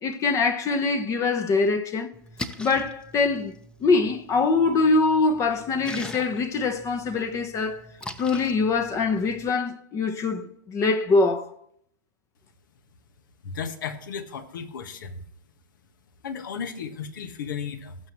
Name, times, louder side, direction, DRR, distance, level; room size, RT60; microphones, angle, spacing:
voice 1, 0.0-2.1 2.6-7.9 8.2-11.5, left 3 dB, 25° left, 1.1 m, -23 dB
Splash splatter, 2.1-9.5, left 1 dB, 10° left, 1.0 m, -42 dB
voice 2, 13.4-15.2 16.2-18.0, left 6 dB, 65° left, 1.6 m, -34 dB
18.5 x 7.8 x 3.1 m
hypercardioid pair, 105°, 11 cm